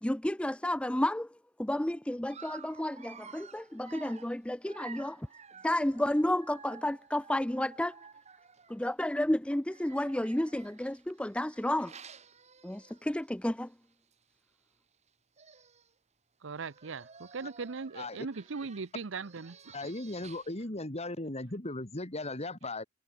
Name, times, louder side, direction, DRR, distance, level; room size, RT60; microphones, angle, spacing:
voice 1, 0.0-1.3 1.6-5.3 5.6-7.9 8.7-11.9 12.6-13.7, left 1 dB, 5° left, 0.5 m, -31 dB
Dog, 2.3-8.9 9.6-13.3 13.7-13.8 14.1-14.2 15.1-15.2 15.4-15.9 16.5-20.6, right 6 dB, 35° right, 2.0 m, -53 dB
voice 2, 16.4-19.7, right 4 dB, 65° right, 0.7 m, -39 dB
voice 3, 18.0-18.3 19.7-22.8, left 2 dB, 35° left, 2.9 m, -37 dB
head